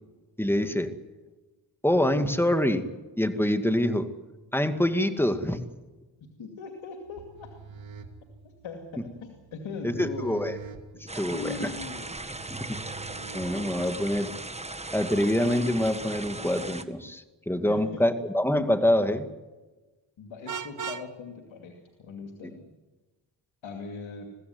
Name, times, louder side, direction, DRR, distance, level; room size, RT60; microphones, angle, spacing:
voice 1, 0.4-0.9 1.8-2.9 3.2-4.1 4.5-5.6 9.8-10.6 11.2-11.7 12.5-12.6 13.3-14.3 14.9-19.3, left 1 dB, 5° left, 8 dB, 2.2 m, -25 dB
voice 2, 6.2-7.5 8.6-10.6 10.9-11.0 11.3-12.1 17.7-18.1 20.2-22.7 23.6-24.3, left 4 dB, 80° left, 3 dB, 2.6 m, -40 dB
sound 1, 7.1-14.0, right 5 dB, 75° right, 2.6 m, -46 dB
sound 2, 11.1-16.8, right 2 dB, 15° right, 1.6 m, -38 dB
Vehicle horn car horn honking, 20.5-21.1, right 6 dB, 40° right, 1.1 m, -35 dB
22.5 x 15.5 x 9.6 m, 1.2 s
cardioid pair, 55°, 47 cm